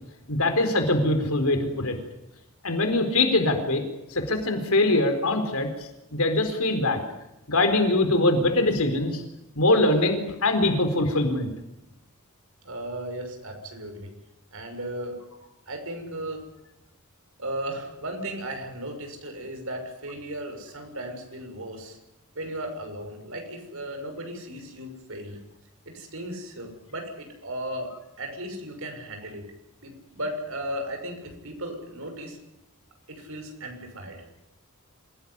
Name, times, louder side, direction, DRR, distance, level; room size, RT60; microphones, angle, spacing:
voice 1, 0.3-2.0 2.6-3.8 4.1-5.7 6.1-7.0 7.5-9.2 9.6-11.5, left 2 dB, 75° left, 6 dB, 4.3 m, -22 dB
voice 2, 12.6-14.1 14.5-15.2 15.7-16.4 17.4-22.0 22.3-25.4 25.8-29.5 29.8-32.4 33.1-34.3, right 1 dB, 65° right, 4 dB, 6.7 m, -36 dB
27.0 x 18.0 x 9.8 m, 0.92 s
head